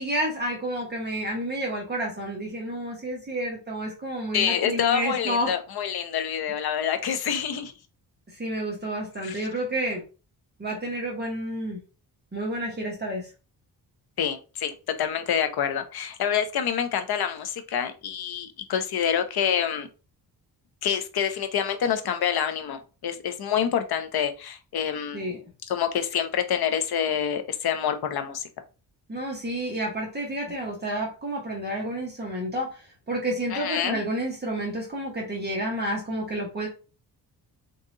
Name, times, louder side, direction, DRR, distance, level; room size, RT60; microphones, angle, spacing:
voice 1, 0.0-5.5 8.3-10.0 10.6-11.8 12.3-13.3 25.1-25.5 29.1-36.7, right 1 dB, 25° right, 1.1 m, -30 dB
voice 2, 4.3-7.7 9.2-9.4 14.2-14.7 15.0-19.9 20.8-25.4 25.7-28.4 33.5-34.0, left 8 dB, 65° left, 0.8 m, -27 dB
4.1 x 2.5 x 3.7 m
wide cardioid pair, 150°, 40 cm